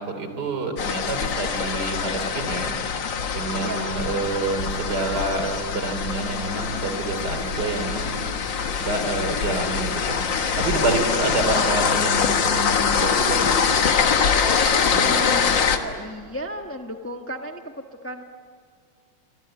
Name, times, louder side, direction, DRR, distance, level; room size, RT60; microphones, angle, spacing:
voice 1, 0.0-2.7 3.4-8.2 8.8-10.2 10.6-13.8 14.7-15.1, right 2 dB, 65° right, 7 dB, 3.8 m, -28 dB
sound 1, 0.8-15.8, left 6 dB, 80° left, 2.1 m, -24 dB
voice 2, 3.6-4.0 10.6-10.9 11.1-11.5 14.9-18.2, equal, 10° left, 4 dB, 1.1 m, -34 dB
25.5 x 25.0 x 8.8 m, 2.1 s
omnidirectional pair, 2.0 m